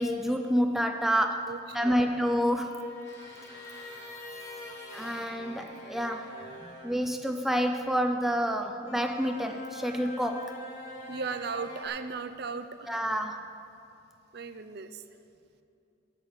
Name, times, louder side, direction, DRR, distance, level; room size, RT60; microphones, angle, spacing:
voice 1, 0.0-3.0 4.9-10.6 12.9-13.5, equal, ahead, 5 dB, 0.4 m, -29 dB
voice 2, 1.5-2.1 11.1-13.0 14.3-15.0, right 5 dB, 55° right, 9 dB, 0.5 m, -37 dB
sound 1, 1.7-5.3, left 2 dB, 15° left, 1.3 m, -46 dB
sound 2, 3.1-6.9 8.8-11.9, left 1 dB, 60° left, 3.2 m, -45 dB
9.9 x 6.7 x 8.7 m, 2.6 s
head